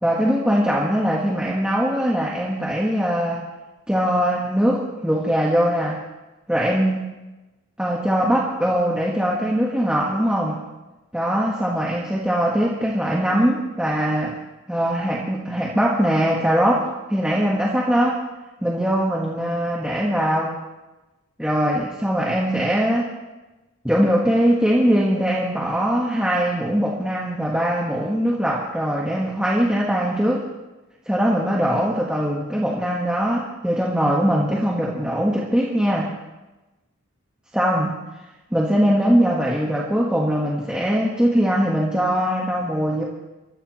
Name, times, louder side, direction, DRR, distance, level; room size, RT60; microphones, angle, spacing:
voice 1, 0.0-3.4 3.9-6.0 6.5-7.1 7.8-10.6 11.1-14.3 14.7-18.2 18.6-20.5 21.4-23.1 23.8-30.5 31.1-36.1 37.5-37.9 38.5-43.0, equal, 5° right, -4 dB, 1.4 m, -21 dB
24.0 x 14.5 x 3.1 m, 1.1 s
head